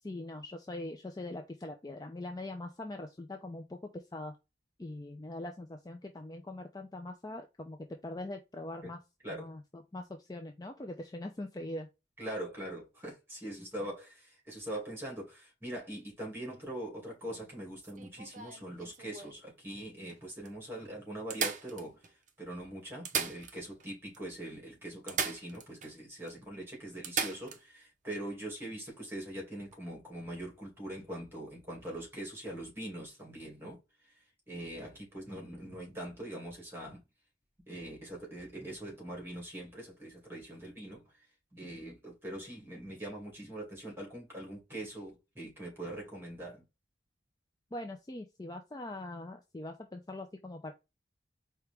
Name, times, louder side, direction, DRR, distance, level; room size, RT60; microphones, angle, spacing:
voice 1, 0.0-4.3 4.8-9.0 9.3-11.9 47.7-50.7, left 1 dB, 20° left, 0.4 m, -42 dB
voice 2, 12.2-33.8 34.0-34.1 34.5-37.0 37.7-41.2 41.5-46.6, right 1 dB, 10° right, 2.4 m, -42 dB
sound 1, 17.8-19.4 20.1-20.2 20.4-20.5 21.3-22.3 22.9-23.9 24.1-24.2 25.1-25.9 26.3-26.4 27.0-27.6 29.6-29.7, right 6 dB, 40° right, 0.6 m, -37 dB
4.6 x 2.9 x 3.4 m
head